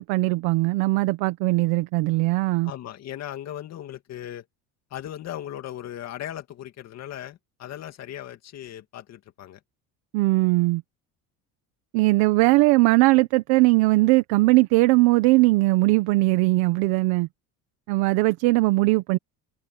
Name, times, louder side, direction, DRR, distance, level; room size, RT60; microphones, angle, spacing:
voice 1, 0.0-2.7 10.1-10.8 11.9-17.3 17.9-19.2, right 22 dB, 75° right, 1.2 m, -20 dB
voice 2, 2.6-4.5 4.9-9.6, left 11 dB, 45° left, 2.5 m, -37 dB
cardioid pair, 145°, 37 cm